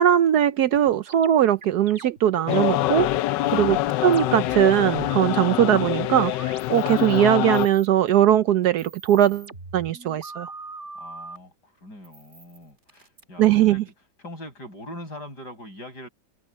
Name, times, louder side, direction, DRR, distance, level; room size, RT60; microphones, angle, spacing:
voice 1, 0.0-3.1 3.5-3.8 4.0-6.3 6.7-9.5 9.7-10.5 13.4-13.8, right 11 dB, 70° right, 1.2 m, -20 dB
sound 1, 0.7-7.2 7.5-8.2 8.6-11.4 12.0-13.2, right 3 dB, 40° right, 2.4 m, -42 dB
sound 2, 2.5-7.7, left 16 dB, 85° left, 1.2 m, -25 dB
voice 2, 3.7-4.0 10.9-13.9 14.2-16.1, left 1 dB, 65° left, 8.6 m, -42 dB
omnidirectional pair, 1.9 m